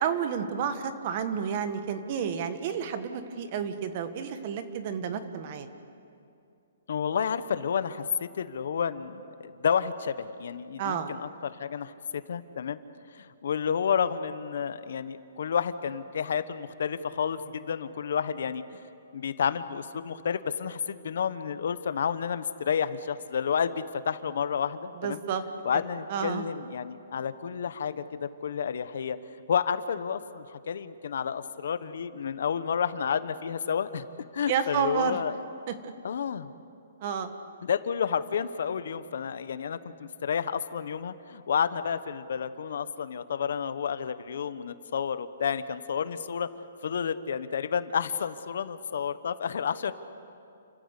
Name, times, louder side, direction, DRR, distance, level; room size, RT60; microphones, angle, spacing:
voice 1, 0.0-5.7 10.8-11.1 25.0-25.4 26.1-26.4 34.5-35.2 35.8-35.9 37.0-37.3, right 7 dB, 35° right, 9 dB, 1.5 m, -30 dB
voice 2, 6.9-12.8 13.1-18.6 19.1-25.2 25.6-29.2 29.5-34.1 34.3-35.4 36.0-36.5 37.6-46.5 46.8-49.9, left 7 dB, 65° left, 13 dB, 1.0 m, -30 dB
30.0 x 15.0 x 8.3 m, 2.5 s
hypercardioid pair, 165°, 0 cm